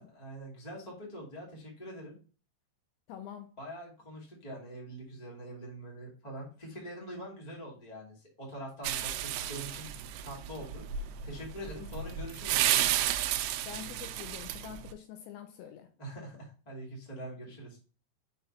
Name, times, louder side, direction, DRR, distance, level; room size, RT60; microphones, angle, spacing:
voice 1, 0.0-2.1 3.6-9.9 10.2-12.9 16.0-17.8, right 1 dB, 45° left, -3 dB, 0.5 m, -44 dB
voice 2, 3.1-3.5 13.7-15.9, left 10 dB, 80° left, 6 dB, 2.7 m, -45 dB
sound 1, 8.8-14.9, right 11 dB, 85° right, 2.7 m, -32 dB
6.6 x 5.8 x 2.8 m, 0.37 s
omnidirectional pair, 5.7 m